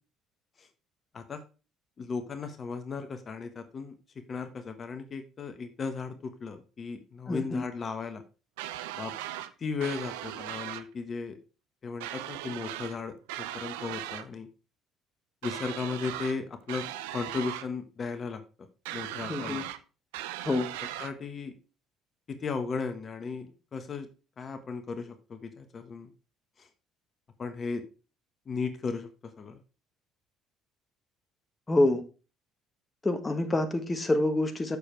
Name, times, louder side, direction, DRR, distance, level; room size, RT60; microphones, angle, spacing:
voice 1, 2.0-3.9 4.3-8.2 9.0-9.1 9.6-11.4 11.8-14.5 15.4-16.8 17.1-18.7 18.9-19.7 21.0-21.5 22.3-24.1 24.4-26.1 26.6-26.7 27.4-27.8 28.5-29.6, left 5 dB, 40° left, 1.3 m, -36 dB
voice 2, 7.3-7.6 19.3-19.6 20.4-20.7 31.7-32.0 33.0-34.8, left 2 dB, 25° left, 1.3 m, -27 dB
sound 1, 8.6-9.5 9.8-10.9 12.0-13.0 13.3-14.3 15.4-16.4 16.7-17.7 18.9-19.8 20.1-21.1, right 13 dB, 80° right, 0.6 m, -38 dB
6.8 x 6.8 x 4.6 m
hypercardioid pair, 60°, 0 cm